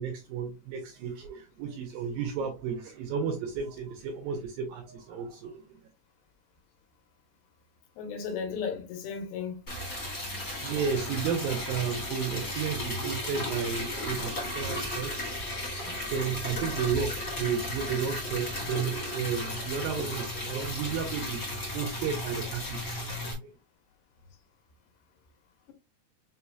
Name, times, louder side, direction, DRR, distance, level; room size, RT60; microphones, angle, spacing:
voice 1, 0.0-5.7 10.6-23.5, right 7 dB, 80° right, 2.2 m, -33 dB
voice 2, 8.0-9.6, left 6 dB, 80° left, 2.9 m, -34 dB
Liquid, 9.7-23.3, left 1 dB, 40° left, 1.2 m, -35 dB
6.2 x 2.9 x 2.3 m
omnidirectional pair, 4.9 m